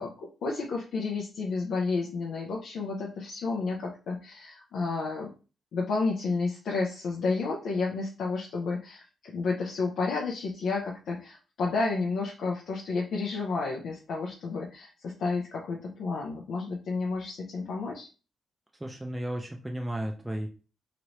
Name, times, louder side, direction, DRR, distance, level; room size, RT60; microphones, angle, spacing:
voice 1, 0.0-5.3 5.7-18.1, left 4 dB, 75° left, -2 dB, 0.6 m, -31 dB
voice 2, 18.8-20.5, right 1 dB, 10° right, 2 dB, 0.5 m, -34 dB
3.0 x 2.6 x 3.0 m, 0.34 s
cardioid pair, 105°, 0 cm